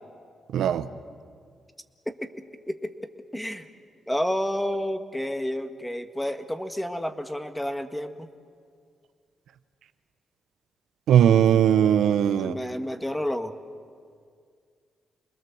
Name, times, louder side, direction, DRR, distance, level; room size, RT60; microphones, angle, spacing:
voice 1, 0.5-0.9 11.1-12.5, right 9 dB, 85° right, 10 dB, 0.9 m, -19 dB
voice 2, 2.1-3.7 4.1-8.3 12.4-13.5, equal, 5° left, 7 dB, 1.6 m, -30 dB
28.5 x 21.0 x 7.1 m, 2.1 s
cardioid pair, 80°, 0 cm